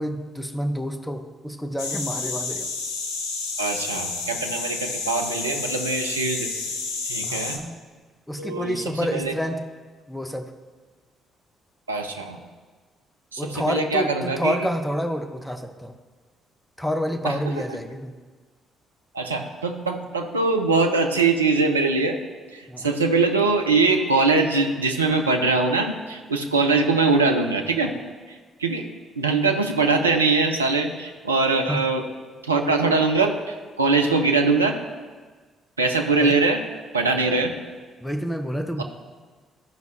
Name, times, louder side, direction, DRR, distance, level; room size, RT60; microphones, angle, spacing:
voice 1, 0.0-2.7 7.2-7.8 8.3-9.6 10.1-10.5 13.4-15.9 16.8-18.1 22.7-22.9 31.7-31.9 36.2-36.4 37.3-37.4 38.0-38.8, equal, 5° left, 6 dB, 0.9 m, -28 dB
sound 1, 1.8-7.6, left 4 dB, 75° left, 0.8 m, -30 dB
voice 2, 3.6-6.5 7.0-7.6 8.4-8.8 9.1-9.3 11.9-12.4 13.3-14.7 17.2-17.6 19.1-22.2 22.5-27.9 28.3-28.8 29.2-32.0 32.4-34.8 35.8-36.6 36.9-37.5 38.8-38.9, right 3 dB, 85° right, 3 dB, 0.5 m, -22 dB
13.0 x 5.2 x 3.2 m, 1.4 s
figure-of-eight pair, 45°, 0 cm